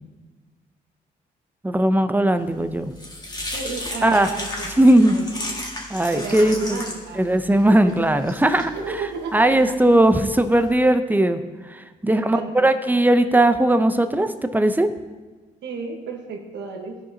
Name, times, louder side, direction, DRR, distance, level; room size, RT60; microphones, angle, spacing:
voice 1, 1.6-2.9 4.0-4.3 4.6-5.2 5.9-6.8 7.1-8.7 9.3-11.4 12.0-14.9, right 1 dB, 10° right, 9 dB, 0.6 m, -18 dB
sound 1, 2.5-10.7, left 1 dB, 20° left, 1.8 m, -35 dB
voice 2, 3.5-4.7 5.1-5.3 6.1-7.3 7.8-7.9 8.7-9.8 12.0-12.7 15.6-17.0, right 4 dB, 80° right, 2 dB, 1.3 m, -32 dB
14.0 x 4.8 x 2.8 m, 1.3 s
cardioid pair, 70°, 18 cm